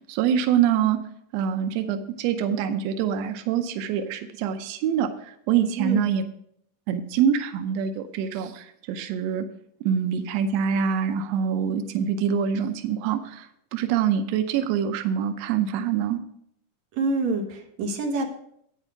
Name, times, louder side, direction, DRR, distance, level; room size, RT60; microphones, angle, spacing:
voice 1, 0.1-1.0 1.3-5.1 5.5-6.2 6.9-9.5 9.8-13.5 13.7-16.2, right 8 dB, 85° right, 8 dB, 1.5 m, -25 dB
voice 2, 16.9-18.2, right 3 dB, 60° right, 2 dB, 2.4 m, -26 dB
9.0 x 8.1 x 4.8 m, 0.70 s
omnidirectional pair, 3.8 m